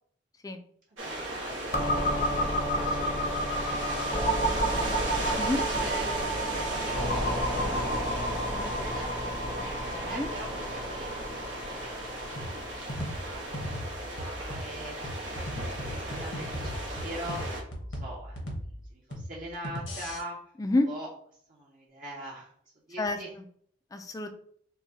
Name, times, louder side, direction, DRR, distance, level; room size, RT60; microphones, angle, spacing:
voice 1, 0.9-1.4 5.4-8.0 8.4-9.1 10.1-12.4 13.2-14.0 14.3-20.5 20.8-21.1 21.5-22.5 22.9-23.3, right 1 dB, 45° right, -4 dB, 0.7 m, -44 dB
sound 1, 1.0-17.6, right 1 dB, 90° right, 1.2 m, -36 dB
sound 2, 1.7-15.3, equal, 45° left, 0.7 m, -31 dB
voice 2, 8.5-10.3 20.6-20.9 23.0-23.2 23.9-24.3, left 2 dB, 20° left, 6 dB, 0.3 m, -31 dB
sound 3, 12.4-20.2, equal, 80° left, 1.1 m, -38 dB
5.6 x 2.2 x 2.8 m, 0.62 s
head